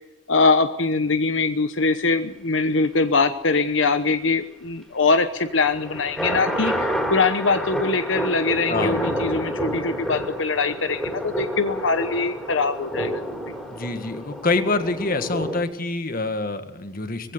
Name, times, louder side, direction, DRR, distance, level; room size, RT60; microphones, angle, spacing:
voice 1, 0.3-13.2, left 4 dB, 80° left, 10 dB, 1.0 m, -22 dB
sound 1, 5.4-15.6, equal, 5° left, 3.9 m, -29 dB
voice 2, 8.7-9.0 13.7-17.3, left 3 dB, 50° left, 9 dB, 1.7 m, -26 dB
20.5 x 16.5 x 8.2 m, 1.0 s
head